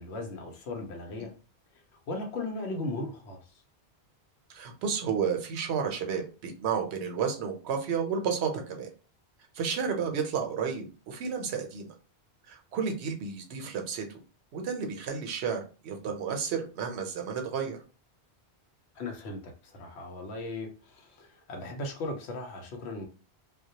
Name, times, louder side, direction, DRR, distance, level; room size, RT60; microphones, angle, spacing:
voice 1, 0.0-1.3 2.1-3.4 19.0-23.0, left 2 dB, 80° left, 3 dB, 0.9 m, -37 dB
voice 2, 4.5-8.9 9.5-11.9 12.5-14.2 14.5-17.8, right 6 dB, 80° right, 3 dB, 0.8 m, -32 dB
2.2 x 2.1 x 2.7 m, 0.35 s
omnidirectional pair, 1.1 m